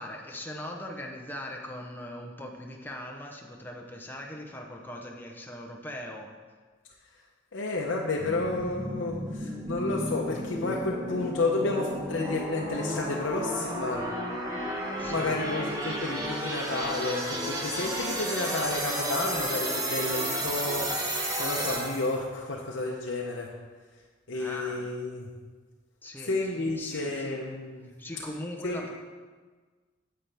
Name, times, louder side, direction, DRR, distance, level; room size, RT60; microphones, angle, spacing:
voice 1, 0.0-6.3 15.0-15.4 24.3-24.9 26.0-27.4 28.0-28.9, left 1 dB, 10° left, 0 dB, 0.8 m, -40 dB
voice 2, 7.5-14.1 15.1-23.5 24.3-25.3 26.2-27.9 28.6-28.9, left 2 dB, 70° left, -2 dB, 0.8 m, -31 dB
sound 1, 8.2-22.2, right 1 dB, 20° right, 1.2 m, -32 dB
9.6 x 7.6 x 3.4 m, 1.4 s
head